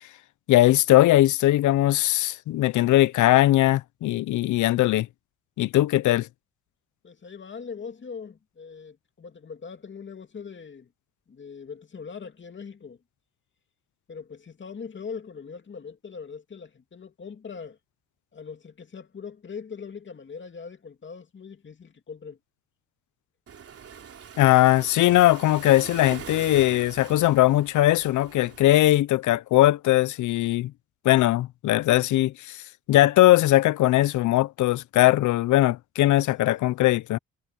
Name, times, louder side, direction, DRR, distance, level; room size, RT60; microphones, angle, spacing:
voice 1, 0.5-5.1 5.6-6.3 24.4-30.7 31.0-32.6 32.9-37.2, left 15 dB, 75° left, 0.7 m, -20 dB
voice 2, 7.0-10.9 11.3-13.0 14.1-17.8 18.3-22.4, left 6 dB, 40° left, 2.7 m, -41 dB
Waves surf, 23.5-28.6, right 7 dB, 50° right, 3.3 m, -42 dB
cardioid pair, 90°, 30 cm